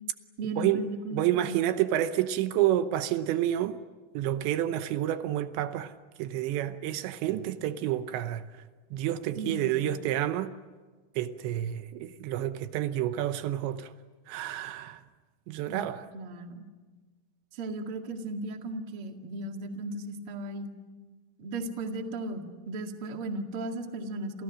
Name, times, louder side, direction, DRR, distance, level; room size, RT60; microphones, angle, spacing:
voice 1, 0.4-1.6 9.4-9.8 15.7-15.8 16.1-16.6 17.5-20.7 21.4-24.4, right 2 dB, 40° right, 2.1 m, -36 dB
voice 2, 1.1-3.8 4.1-5.9 6.2-8.5 8.9-10.5 11.2-13.9 14.3-15.0 15.5-16.1, right 12 dB, 80° right, 3.1 m, -29 dB
29.5 x 28.0 x 6.3 m
omnidirectional pair, 5.2 m